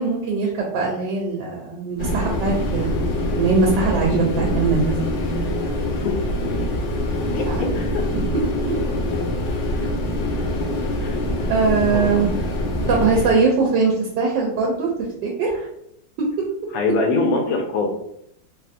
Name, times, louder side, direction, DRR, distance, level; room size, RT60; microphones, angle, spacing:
voice 1, 0.0-5.1 7.5-7.7 8.2-8.3 11.5-12.3 12.9-14.9 15.2-15.7 16.2-16.5, right 4 dB, 80° right, -1 dB, 1.2 m, -21 dB
sound 1, 2.0-13.3, left 1 dB, 85° left, 1.4 m, -24 dB
voice 2, 5.8-6.1 7.3-7.5 7.7-8.0 11.0-11.1 11.9-12.3 16.7-18.0, left 3 dB, 65° left, 3 dB, 1.0 m, -23 dB
3.5 x 2.4 x 2.6 m, 0.76 s
omnidirectional pair, 1.9 m